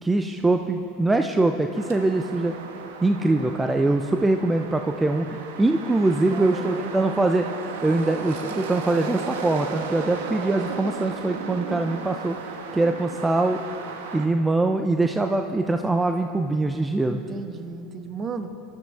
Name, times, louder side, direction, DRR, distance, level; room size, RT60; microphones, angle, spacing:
voice 1, 0.0-2.5 3.0-7.5 7.8-12.4 12.7-13.6 14.1-17.2, right 2 dB, 10° right, 6 dB, 0.6 m, -23 dB
sound 1, 1.8-14.3, right 5 dB, 70° right, 1.3 m, -35 dB
voice 2, 6.3-7.3 17.1-18.5, right 5 dB, 30° right, 9 dB, 1.1 m, -35 dB
25.5 x 12.5 x 3.5 m, 2.8 s
hypercardioid pair, 80°, 0 cm